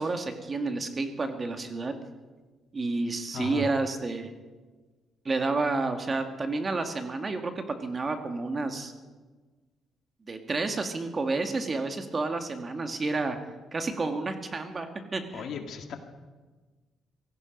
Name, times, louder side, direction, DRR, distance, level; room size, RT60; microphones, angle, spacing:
voice 1, 0.0-1.9 2.7-4.3 5.3-8.9 10.3-13.4 13.7-15.5, right 3 dB, 35° right, 6 dB, 1.9 m, -30 dB
voice 2, 3.3-3.7 15.3-16.0, left 6 dB, 70° left, 5 dB, 2.0 m, -36 dB
17.5 x 15.0 x 5.3 m, 1.3 s
cardioid pair, 90°, 0 cm